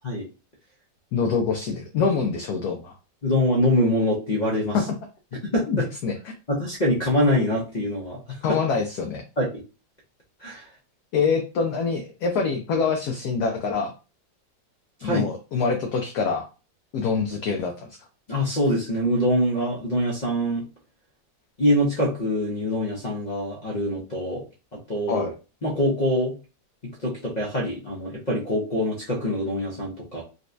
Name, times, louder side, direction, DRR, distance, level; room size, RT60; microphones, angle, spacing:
voice 1, 1.1-2.9 4.7-4.8 5.7-6.3 8.4-9.2 11.1-13.9 15.0-16.5 16.9-17.9 25.1-25.3, left 5 dB, 70° left, 2 dB, 1.0 m, -25 dB
voice 2, 3.2-4.8 5.5-5.9 6.5-8.6 9.4-9.5 10.4-10.7 15.0-15.3 18.3-20.6 21.6-24.4 24.9-25.3 25.6-26.3 26.8-30.2, left 1 dB, 45° left, -4 dB, 0.5 m, -24 dB
4.0 x 2.2 x 2.6 m, 0.32 s
omnidirectional pair, 2.0 m